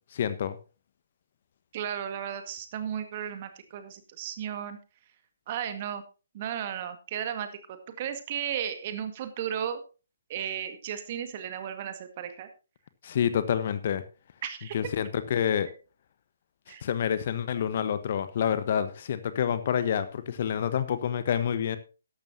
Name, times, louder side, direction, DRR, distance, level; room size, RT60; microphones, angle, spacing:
voice 1, 0.1-0.6 13.0-14.0 14.7-15.7 16.8-21.8, left 8 dB, 45° left, 12 dB, 1.2 m, -28 dB
voice 2, 1.7-4.8 5.5-6.0 6.3-9.8 10.3-12.5 14.4-14.8 16.7-16.8, right 9 dB, 35° right, 9 dB, 1.8 m, -34 dB
14.0 x 11.5 x 2.8 m, 0.32 s
figure-of-eight pair, 135°, 0 cm